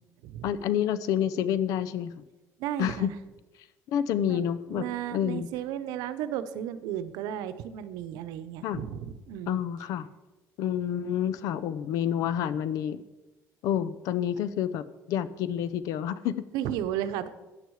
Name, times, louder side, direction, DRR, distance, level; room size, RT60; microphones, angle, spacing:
voice 1, 0.4-2.2 2.8-3.1 3.9-4.8 5.1-5.5 8.6-8.8 9.5-10.1 10.6-13.0 13.6-16.4, left 10 dB, 65° left, 15 dB, 0.7 m, -28 dB
voice 2, 2.6-3.1 4.3-4.4 4.7-9.6 14.3-14.4 16.5-17.3, right 10 dB, 85° right, 12 dB, 0.9 m, -34 dB
13.5 x 9.8 x 4.8 m, 1.1 s
cardioid pair, 165°, 6 cm